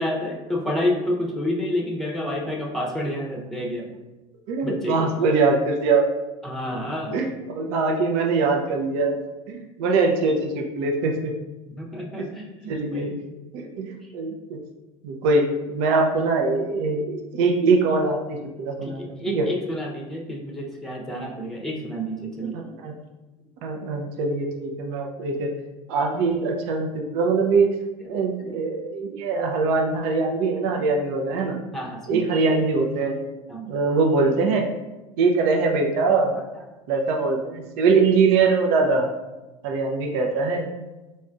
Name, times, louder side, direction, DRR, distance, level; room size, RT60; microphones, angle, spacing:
voice 1, 0.0-3.9 4.6-5.1 6.4-7.1 11.7-13.1 14.0-14.1 18.8-22.6 28.0-28.1 30.8-30.9 31.7-32.2 33.5-33.7 34.2-34.3 36.5-36.6, left 1 dB, ahead, -1 dB, 0.8 m, -29 dB
voice 2, 4.5-6.0 7.1-9.2 9.5-11.3 12.2-12.3 12.7-13.2 13.5-14.6 15.0-19.5 21.7-21.8 22.4-22.9 23.6-25.5 25.9-27.7 28.1-31.6 32.1-33.1 33.7-34.7 35.2-36.3 36.9-39.1 39.6-40.7, right 4 dB, 60° right, 2 dB, 0.7 m, -22 dB
4.2 x 3.2 x 2.5 m, 1.1 s
hypercardioid pair, 85°, 16 cm